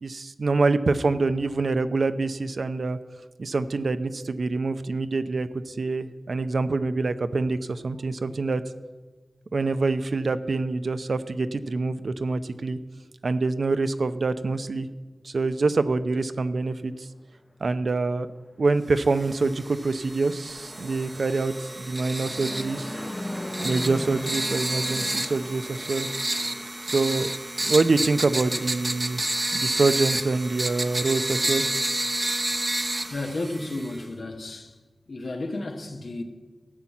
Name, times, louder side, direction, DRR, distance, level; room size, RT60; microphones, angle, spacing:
voice 1, 0.0-3.0 3.4-8.6 9.5-12.8 13.2-14.9 15.2-17.1 17.6-18.3 18.6-23.0 23.6-26.1 26.8-27.3 27.6-29.2 29.5-31.7, right 3 dB, 70° right, 0.6 m, -25 dB
sound 1, 19.1-34.0, right 1 dB, 35° right, 0.8 m, -30 dB
Fixed-wing aircraft airplane, 19.6-27.0, left 1 dB, 25° left, 0.5 m, -39 dB
voice 2, 33.1-34.8 35.1-36.2, left 2 dB, 75° left, 1.4 m, -32 dB
13.5 x 5.8 x 8.5 m
cardioid pair, 40°, 0 cm